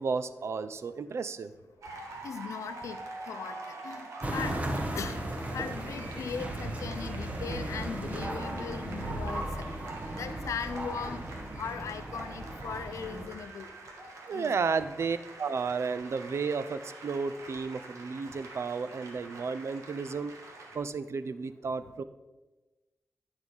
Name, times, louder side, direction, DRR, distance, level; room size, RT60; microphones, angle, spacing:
voice 1, 0.0-1.5 14.3-20.4 20.7-22.0, right 5 dB, 60° right, 13 dB, 0.5 m, -33 dB
sound 1, 1.8-20.8, right 2 dB, 90° right, 1.4 m, -46 dB
voice 2, 2.2-3.0 3.2-4.6 4.9-5.2 5.5-9.4 10.1-11.2 11.6-13.7 14.3-14.5, left 6 dB, 85° left, 9 dB, 0.6 m, -38 dB
sound 2, 4.2-13.3, right 1 dB, 25° right, 1.3 m, -36 dB
10.5 x 4.9 x 5.4 m, 1.2 s
cardioid pair, 70°, 5 cm